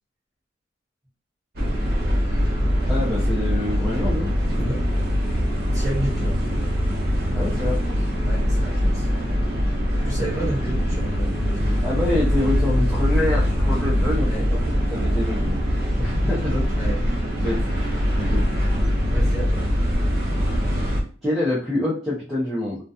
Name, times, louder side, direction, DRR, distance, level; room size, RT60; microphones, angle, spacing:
sound 1, 1.6-21.0, equal, 50° right, 0.7 m, -22 dB
voice 1, 2.9-4.3 7.3-8.1 10.2-10.5 11.8-15.6 16.0-16.6 17.4-18.4 21.2-22.8, left 1 dB, ahead, -10 dB, 0.5 m, -27 dB
voice 2, 4.6-4.9 5.7-6.4 8.2-9.1 10.0-11.7 14.2-14.5 16.7-17.0 19.1-19.7, right 1 dB, 15° right, -5 dB, 0.9 m, -31 dB
2.3 x 2.2 x 2.7 m, 0.40 s
head